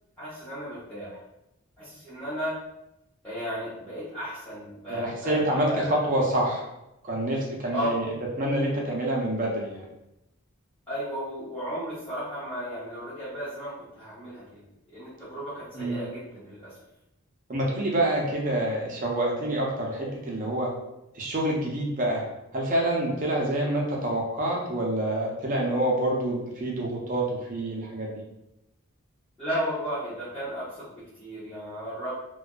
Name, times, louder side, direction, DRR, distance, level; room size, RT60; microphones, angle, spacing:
voice 1, 0.2-1.2 1.8-2.6 3.2-5.9 7.7-8.1 10.9-16.8 29.4-32.1, equal, 10° left, -15 dB, 0.9 m, -34 dB
voice 2, 4.9-6.6 7.0-8.1 8.4-9.8 15.7-16.0 17.5-20.7 21.1-22.2 22.5-28.1, right 1 dB, 35° right, -2 dB, 0.5 m, -27 dB
2.4 x 2.2 x 2.2 m, 0.89 s
head